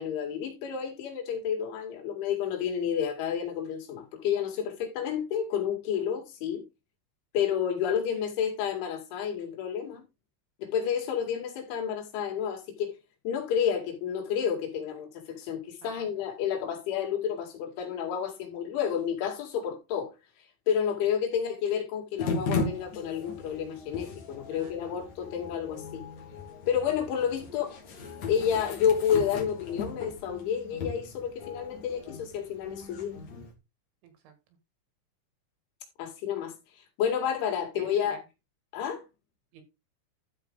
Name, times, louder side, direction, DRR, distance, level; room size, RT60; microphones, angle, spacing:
voice 1, 0.0-6.6 7.3-10.0 10.6-12.9 13.2-20.1 20.7-26.0 26.7-27.8 28.3-33.2 36.0-36.5 37.0-38.2 38.7-39.0, left 8 dB, 80° left, 4.6 m, -30 dB
sound 1, 22.2-33.5, left 4 dB, 50° left, 2.6 m, -37 dB
voice 2, 24.5-25.0 34.0-34.3 37.8-38.2 39.5-39.6, right 7 dB, 75° right, 4.3 m, -52 dB
13.0 x 5.1 x 3.7 m
omnidirectional pair, 5.3 m